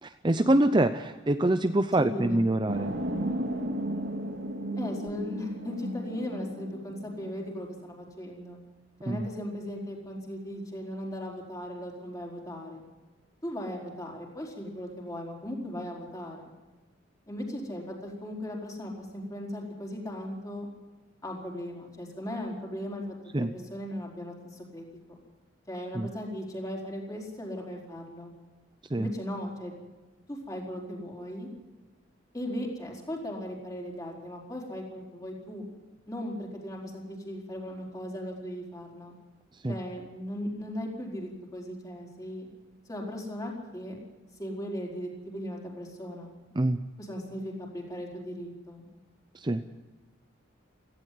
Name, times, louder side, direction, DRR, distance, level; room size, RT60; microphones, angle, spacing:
voice 1, 0.0-2.9 9.1-9.3 23.3-23.5 25.9-26.1 28.9-29.1 39.6-39.8 46.6-46.8 49.3-49.6, right 1 dB, 25° right, 9 dB, 0.6 m, -25 dB
voice 2, 2.0-2.5 4.8-8.6 9.0-12.8 13.4-16.5 17.3-20.7 21.2-25.2 25.7-28.3 28.9-29.7 30.3-31.5 32.3-35.7 36.1-39.1 39.7-42.5 42.9-44.0 44.4-46.3 47.0-48.9, equal, 20° left, -1 dB, 4.5 m, -37 dB
sound 1, 2.7-7.7, right 1 dB, 60° right, 2.8 m, -34 dB
17.5 x 16.0 x 9.4 m, 1.2 s
head